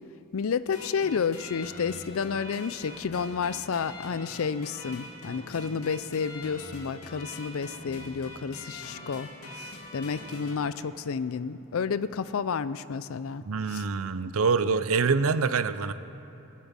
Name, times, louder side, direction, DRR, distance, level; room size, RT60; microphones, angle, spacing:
voice 1, 0.3-9.3 9.6-13.4 13.7-13.8, left 6 dB, 75° left, 15 dB, 0.4 m, -31 dB
sound 1, 0.7-10.6, left 1 dB, 90° left, 2.3 m, -43 dB
voice 2, 13.5-15.9, right 5 dB, 75° right, 13 dB, 0.6 m, -25 dB
21.0 x 7.5 x 7.4 m, 3.0 s
head